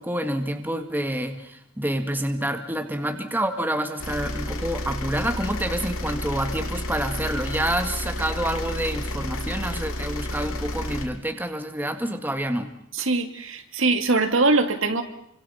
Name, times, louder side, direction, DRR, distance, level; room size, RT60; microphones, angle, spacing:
voice 1, 0.0-12.7, right 1 dB, 10° right, 6 dB, 1.9 m, -28 dB
sound 1, 4.0-11.1, left 1 dB, 90° left, 3.1 m, -31 dB
voice 2, 12.9-15.0, right 3 dB, 65° right, 7 dB, 2.3 m, -22 dB
29.5 x 25.5 x 5.8 m, 0.74 s
head